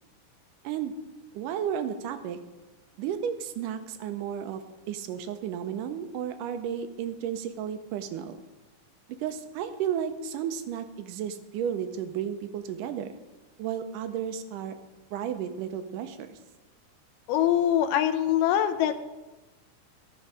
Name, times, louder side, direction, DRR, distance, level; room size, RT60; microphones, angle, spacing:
voice 1, 1.3-2.4 3.0-4.6 4.9-8.4 9.2-13.1 13.6-14.8 15.1-16.4, right 9 dB, 80° right, 8 dB, 2.3 m, -33 dB
voice 2, 17.3-19.0, left 11 dB, 85° left, 10 dB, 2.3 m, -23 dB
14.5 x 6.3 x 4.9 m, 1.1 s
omnidirectional pair, 3.7 m